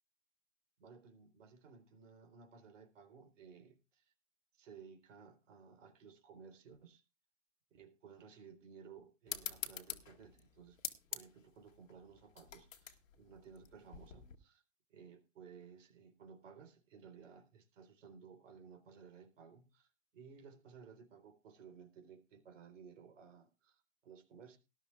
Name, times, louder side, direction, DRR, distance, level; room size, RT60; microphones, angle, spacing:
voice 1, 0.8-4.1 4.6-7.0 7.7-10.8 11.1-14.6 14.9-24.6, right 6 dB, 70° right, 3.8 m, -57 dB
sound 1, 9.3-14.4, left 8 dB, 80° left, 2.1 m, -46 dB
19.0 x 12.5 x 2.4 m
hypercardioid pair, 110°, 38 cm